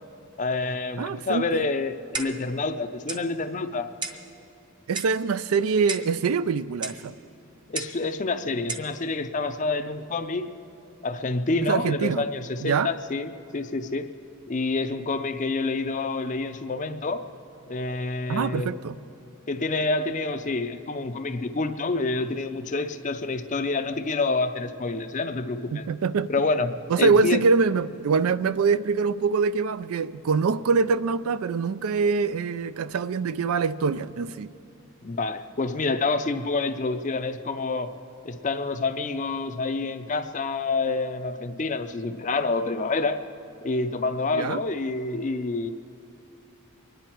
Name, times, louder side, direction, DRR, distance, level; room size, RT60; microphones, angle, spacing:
voice 1, 0.4-3.9 7.7-10.5 11.0-14.1 14.5-17.2 17.7-18.7 19.5-25.9 26.3-27.4 35.0-37.9 38.2-43.2 43.6-45.7, left 3 dB, 35° left, 9 dB, 0.5 m, -28 dB
voice 2, 1.0-1.6 4.9-7.1 11.6-12.2 12.6-12.9 18.3-18.9 25.7-26.3 26.9-34.5 44.3-44.6, right 5 dB, 80° right, 15 dB, 0.4 m, -24 dB
Clock, 2.1-2.5 3.1-3.3 4.0-4.3 4.9-5.2 5.9-6.2 6.8-7.0 7.7-8.0 8.7-8.9, right 3 dB, 20° right, 0.7 m, -33 dB
24.5 x 10.5 x 4.5 m, 2.7 s
head